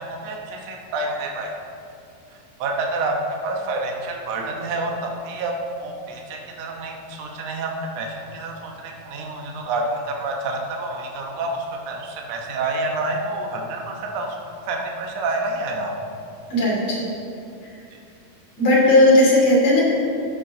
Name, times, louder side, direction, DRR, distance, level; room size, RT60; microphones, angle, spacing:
voice 1, 0.0-1.5 2.6-3.1 3.4-5.5 5.8-14.4 14.6-15.9, right 2 dB, 65° right, 1 dB, 1.7 m, -28 dB
voice 2, 16.5-17.0 18.6-19.8, left 1 dB, 45° left, -5 dB, 3.6 m, -16 dB
14.0 x 7.8 x 3.8 m, 2.6 s
omnidirectional pair, 4.3 m